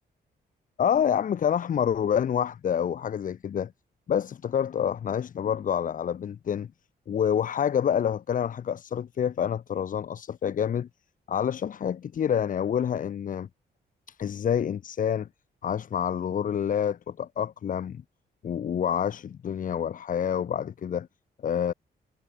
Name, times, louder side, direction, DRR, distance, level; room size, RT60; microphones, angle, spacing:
voice 1, 0.8-3.7 4.1-6.7 7.1-10.9 11.3-13.5 14.1-15.3 15.6-18.0 18.4-21.1 21.4-21.7, left 8 dB, 50° left, 1.0 m, -27 dB
cardioid pair, 140°, 18 cm